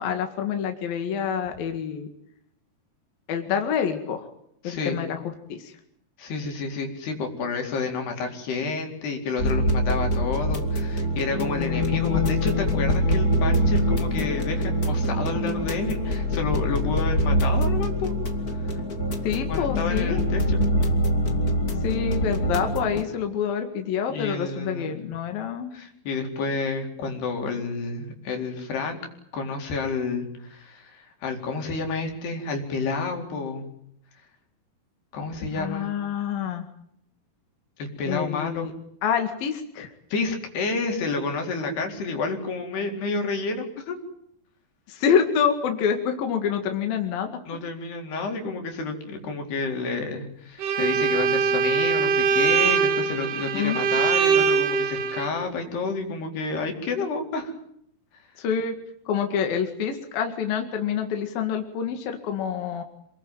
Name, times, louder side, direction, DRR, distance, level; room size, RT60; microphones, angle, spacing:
voice 1, 0.0-2.1 3.3-4.3 4.6-5.2 5.5-5.7 19.2-20.2 21.8-25.7 35.5-36.7 38.1-38.7 39.0-39.9 44.9-47.3 53.5-53.8 58.4-58.8 59.1-62.8, left 7 dB, 65° left, 5 dB, 3.7 m, -27 dB
voice 2, 4.6-5.0 6.2-18.1 18.6-18.8 19.5-20.6 24.1-24.9 25.7-29.0 29.3-33.6 35.1-35.9 37.8-38.7 40.1-44.0 47.5-57.5, left 3 dB, 90° left, 3 dB, 6.3 m, -30 dB
sound 1, 9.4-23.0, left 1 dB, 25° left, 2.4 m, -24 dB
Bowed string instrument, 50.6-55.3, right 6 dB, 80° right, 4.2 m, -22 dB
28.0 x 21.0 x 9.2 m, 0.73 s
omnidirectional pair, 4.5 m